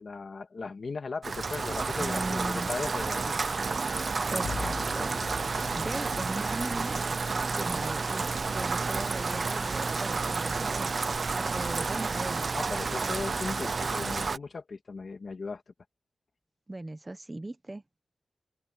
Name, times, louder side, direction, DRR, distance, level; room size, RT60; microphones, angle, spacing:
voice 1, 0.0-3.5 12.5-15.6, left 4 dB, 50° left, 1.8 m, -37 dB
Rain, 1.2-14.4, right 4 dB, 45° right, 0.5 m, -30 dB
voice 2, 2.0-2.7 4.3-5.2 5.7-7.1 7.5-10.9 11.3-12.5 16.7-17.8, right 2 dB, 20° right, 1.1 m, -38 dB
Bowed string instrument, 4.4-7.5, left 6 dB, 75° left, 1.7 m, -42 dB
wide cardioid pair, 150°, 0 cm